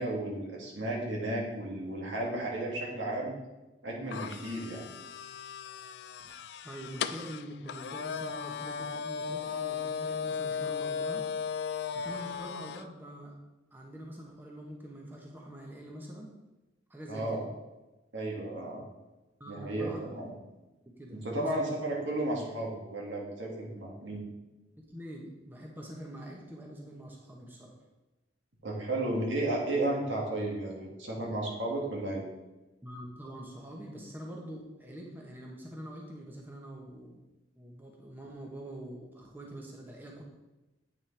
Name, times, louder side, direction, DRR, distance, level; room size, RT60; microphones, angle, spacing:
voice 1, 0.0-3.4 3.8-4.9 17.1-17.4 18.1-18.8 19.5-20.3 21.1-24.2 28.6-32.3, right 1 dB, 80° right, -3 dB, 2.0 m, -33 dB
sound 1, 4.1-12.9, left 6 dB, 60° left, 0.3 m, -36 dB
voice 2, 6.6-11.2 11.9-13.3 13.7-16.3 16.9-17.4 19.4-20.1 20.9-21.6 24.8-27.7 32.8-37.2 37.6-40.2, right 1 dB, 10° right, -1 dB, 0.9 m, -45 dB
8.6 x 6.2 x 3.3 m, 1.1 s
head